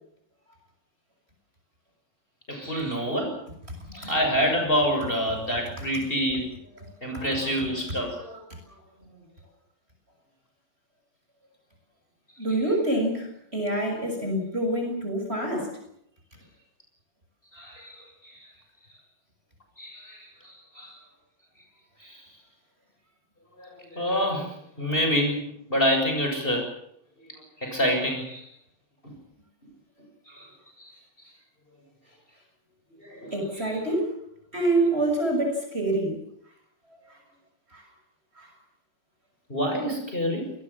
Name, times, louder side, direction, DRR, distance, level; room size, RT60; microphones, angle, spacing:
voice 1, 2.5-3.4 3.9-6.5 7.0-8.4 12.5-12.6 17.5-18.5 19.8-21.0 22.0-22.2 23.6-26.7 27.6-28.5 29.0-29.2 30.3-30.5 30.8-30.9 33.0-33.8 39.5-40.5, equal, 25° left, 3 dB, 7.3 m, -28 dB
voice 2, 12.4-15.7 33.3-34.1 34.5-36.1 37.7-37.8 38.4-38.5, right 1 dB, 25° right, 3 dB, 7.0 m, -26 dB
28.0 x 21.0 x 7.4 m, 0.72 s
omnidirectional pair, 2.4 m